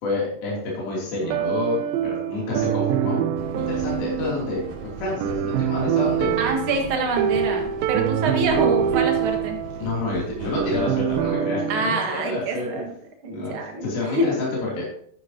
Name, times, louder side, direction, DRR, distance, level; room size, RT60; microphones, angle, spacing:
voice 1, 0.0-1.8 2.0-3.2 3.5-4.6 5.0-6.4 9.8-12.7 13.3-13.5 13.8-14.9, left 3 dB, 80° left, -5 dB, 4.9 m, -28 dB
sound 1, 1.2-11.9, right 9 dB, 85° right, 2.4 m, -25 dB
sound 2, 3.4-11.3, right 2 dB, 65° right, 4.1 m, -38 dB
voice 2, 6.4-9.6 11.7-12.9 13.2-13.9 14.1-14.4, right 2 dB, 45° right, 2 dB, 2.0 m, -25 dB
12.0 x 9.8 x 2.9 m, 0.63 s
omnidirectional pair, 4.1 m